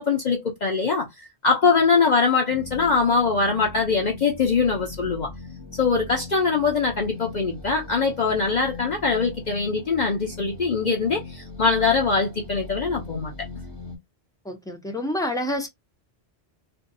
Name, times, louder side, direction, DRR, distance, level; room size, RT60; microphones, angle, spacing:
voice 1, 0.0-5.3 5.8-13.3, left 4 dB, 50° left, 0.7 m, -22 dB
sound 1, 2.5-14.0, left 3 dB, 25° right, 0.7 m, -40 dB
voice 2, 14.4-15.7, left 1 dB, 5° left, 0.4 m, -28 dB
2.5 x 2.2 x 2.6 m
omnidirectional pair, 1.1 m